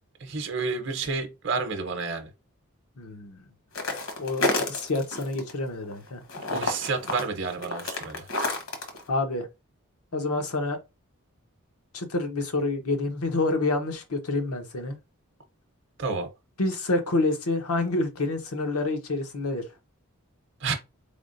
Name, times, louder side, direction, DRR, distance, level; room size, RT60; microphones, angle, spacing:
voice 1, 0.2-2.3 6.5-8.3 16.0-16.3 20.6-20.7, right 4 dB, 55° right, 0.7 m, -30 dB
voice 2, 3.0-3.4 4.2-6.2 9.1-9.5 10.1-10.8 11.9-15.0 16.6-19.6, left 2 dB, 90° left, 0.9 m, -28 dB
sound 1, 3.7-5.5 5.8-9.0, left 2 dB, 65° left, 1.1 m, -29 dB
4.2 x 3.4 x 2.6 m
head